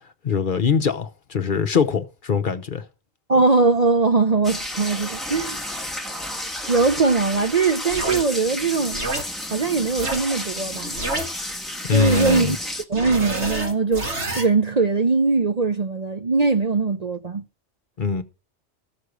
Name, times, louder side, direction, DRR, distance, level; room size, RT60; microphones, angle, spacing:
voice 1, 0.2-2.9 11.8-12.6 18.0-18.2, left 6 dB, 50° left, 0.9 m, -22 dB
voice 2, 3.3-5.6 6.7-9.0 9.5-10.9 11.9-12.6 12.9-17.4, right 4 dB, 40° right, 0.7 m, -21 dB
sound 1, 4.4-12.8, left 1 dB, ahead, 1.2 m, -32 dB
sound 2, 7.9-8.2 8.9-9.2 10.0-10.2 10.9-11.2 11.9-12.4 12.9-14.5, right 1 dB, 70° right, 2.5 m, -28 dB
14.0 x 6.4 x 6.6 m
omnidirectional pair, 1.2 m